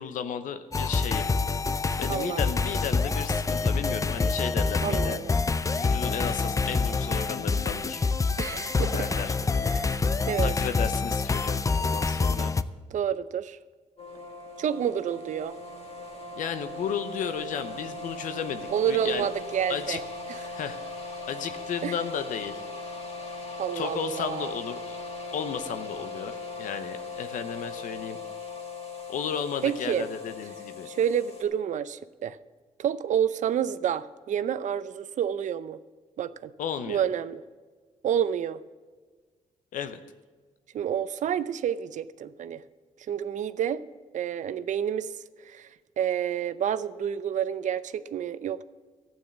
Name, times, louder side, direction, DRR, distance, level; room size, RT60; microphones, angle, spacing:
voice 1, 0.0-1.3 2.0-5.2 5.8-8.0 8.9-9.4 10.4-12.5 16.4-19.3 19.7-20.0 20.4-20.8 21.3-22.6 23.7-25.0 25.3-28.2 29.1-30.9 36.6-37.1 39.7-40.0, left 8 dB, 80° left, 10 dB, 0.7 m, -34 dB
sound 1, 0.7-12.6, left 4 dB, 25° left, 0.5 m, -26 dB
voice 2, 2.1-2.6 4.8-5.4 8.4-9.3 9.6-10.5 12.9-13.6 14.6-15.5 18.7-20.0 20.3-20.6 21.8-21.9 23.6-24.6 29.6-30.1 30.8-32.4 32.8-35.8 36.2-36.5 36.9-37.4 38.0-38.6 40.7-42.6 43.1-43.8 44.1-45.1 45.4-48.6, right 9 dB, 70° right, 15 dB, 0.6 m, -29 dB
sound 2, 14.0-31.4, left 3 dB, 50° left, 2.4 m, -39 dB
12.0 x 9.1 x 7.1 m, 1.4 s
cardioid pair, 80°, 13 cm